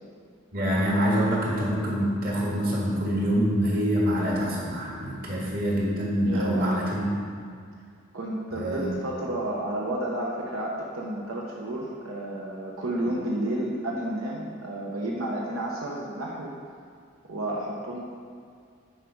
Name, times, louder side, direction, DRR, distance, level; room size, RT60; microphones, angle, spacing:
voice 1, 0.5-7.0 8.5-8.9, equal, 45° right, -4 dB, 1.8 m, -25 dB
voice 2, 6.2-6.7 8.1-16.5 17.3-18.1, right 1 dB, 80° right, -3 dB, 1.0 m, -31 dB
9.8 x 5.2 x 4.7 m, 2.2 s
head